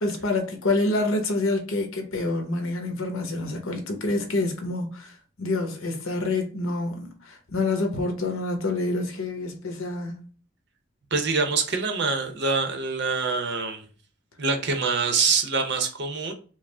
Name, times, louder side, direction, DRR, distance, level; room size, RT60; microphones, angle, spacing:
voice 1, 0.0-10.2, left 2 dB, 70° left, 1.0 m, -27 dB
voice 2, 11.1-13.8 14.4-16.3, right 4 dB, 50° right, 0.7 m, -25 dB
4.8 x 2.0 x 3.3 m
head